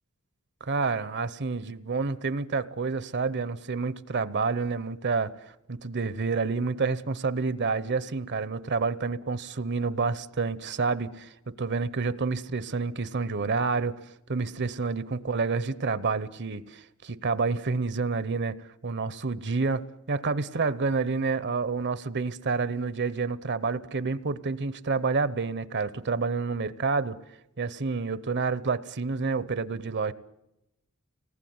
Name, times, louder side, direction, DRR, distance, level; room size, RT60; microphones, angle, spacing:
voice 1, 0.6-14.0 14.3-18.6 18.8-27.2 27.6-30.1, right 4 dB, 55° right, 17 dB, 0.8 m, -29 dB
26.0 x 19.0 x 9.5 m, 0.93 s
head